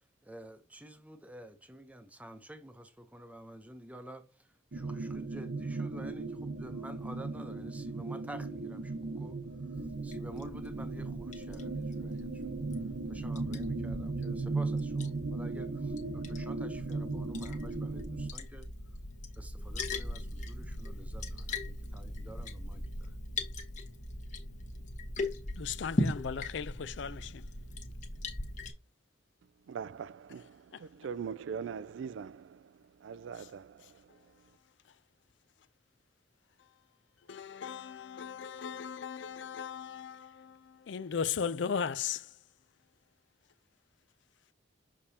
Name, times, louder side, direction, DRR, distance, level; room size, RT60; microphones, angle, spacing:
voice 1, 0.2-9.4 10.0-12.6 13.1-18.7 19.4-23.1, right 1 dB, 10° right, 0.8 m, -50 dB
sound 1, 4.7-18.3, right 3 dB, 60° right, 0.9 m, -37 dB
Liquid, 9.7-28.7, left 2 dB, 40° left, 1.1 m, -40 dB
voice 2, 25.6-27.5 30.7-30.8 33.4-33.5 33.8-33.9 37.3-42.3, left 6 dB, 70° left, 0.4 m, -37 dB
voice 3, 29.7-30.4 31.0-32.4 33.0-33.7, right 6 dB, 80° right, 0.3 m, -40 dB
6.7 x 5.0 x 2.8 m
head